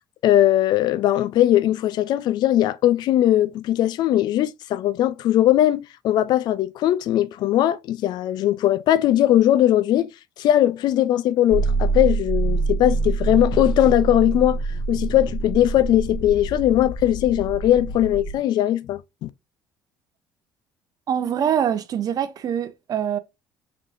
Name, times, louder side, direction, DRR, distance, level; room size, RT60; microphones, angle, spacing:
voice 1, 0.2-10.1 10.4-14.6 14.9-19.3, left 12 dB, 60° left, 0.4 m, -19 dB
sound 1, 11.5-18.4, right 3 dB, 25° left, 1.2 m, -26 dB
voice 2, 21.1-23.2, right 9 dB, 50° right, 0.6 m, -24 dB
4.9 x 3.4 x 2.6 m
hypercardioid pair, 65°, 8 cm